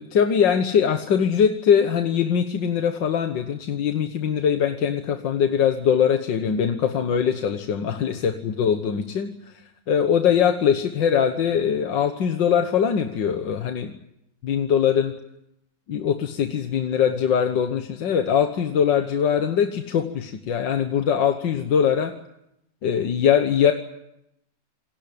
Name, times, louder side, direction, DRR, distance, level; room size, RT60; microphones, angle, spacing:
voice 1, 0.0-9.5 9.9-13.9 14.4-15.1 15.9-22.1 22.8-23.7, left 8 dB, 85° left, 6 dB, 1.9 m, -22 dB
27.5 x 19.0 x 8.7 m, 0.82 s
omnidirectional pair, 1.9 m